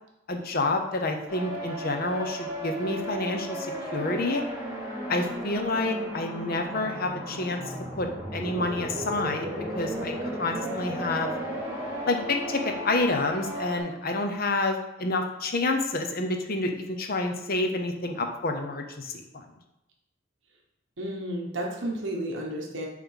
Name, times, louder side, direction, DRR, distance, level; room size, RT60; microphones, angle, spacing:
voice 1, 0.3-4.4 5.1-7.6 7.9-9.5 9.7-11.3 12.0-19.4, left 2 dB, 50° left, 4 dB, 0.8 m, -28 dB
sound 1, 1.3-13.8, right 1 dB, 15° right, 2.3 m, -34 dB
voice 2, 21.0-22.9, right 1 dB, 65° right, 0 dB, 1.1 m, -32 dB
6.8 x 3.3 x 5.7 m, 0.91 s
head